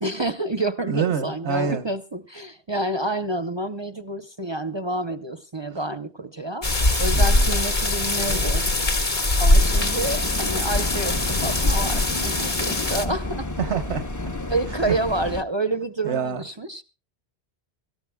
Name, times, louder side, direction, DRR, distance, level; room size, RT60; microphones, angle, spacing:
voice 1, 0.0-6.7 7.0-8.6 9.4-13.5 14.5-16.8, right 2 dB, 30° right, 0.7 m, -28 dB
voice 2, 0.9-1.8 7.1-7.5 13.6-14.0 14.9-15.0 16.0-16.4, right 6 dB, 90° right, 1.4 m, -26 dB
sound 1, 6.6-13.0, left 2 dB, 45° left, 1.8 m, -22 dB
sound 2, 9.6-15.4, left 2 dB, 20° left, 0.7 m, -31 dB
25.0 x 14.0 x 2.2 m
omnidirectional pair, 1.1 m